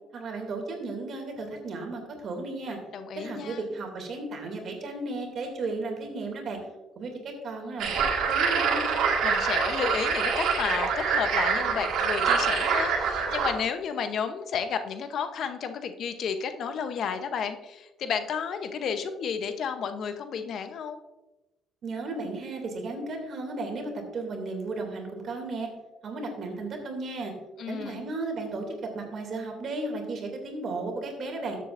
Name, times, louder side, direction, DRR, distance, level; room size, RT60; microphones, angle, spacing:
voice 1, 0.1-2.8 3.2-6.6 7.0-8.0 8.3-8.8 21.8-25.7 26.0-27.3 27.7-31.6, right 3 dB, 55° right, 3 dB, 2.6 m, -34 dB
voice 2, 2.9-3.6 9.2-21.0 27.6-28.0, left 6 dB, 65° left, 9 dB, 0.8 m, -32 dB
sound 1, 7.8-13.5, right 5 dB, 75° right, 1.8 m, -25 dB
13.0 x 7.6 x 2.6 m, 1.0 s
cardioid pair, 90°, 0 cm